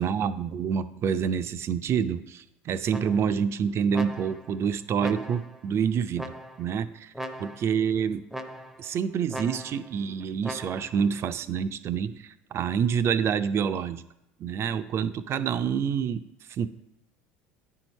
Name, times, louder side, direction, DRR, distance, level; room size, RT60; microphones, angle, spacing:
voice 1, 0.0-6.3 6.6-6.9 7.4-8.2 8.8-14.0 14.4-16.2 16.6-16.7, right 7 dB, 45° right, 13 dB, 0.5 m, -27 dB
sound 1, 2.9-3.5 3.9-4.6 5.0-5.6 6.2-6.8 7.1-7.8 8.3-8.9 9.3-9.9 10.4-11.0, equal, ahead, 0.7 m, -39 dB
9.8 x 4.6 x 5.3 m, 0.84 s
hypercardioid pair, 85°, 6 cm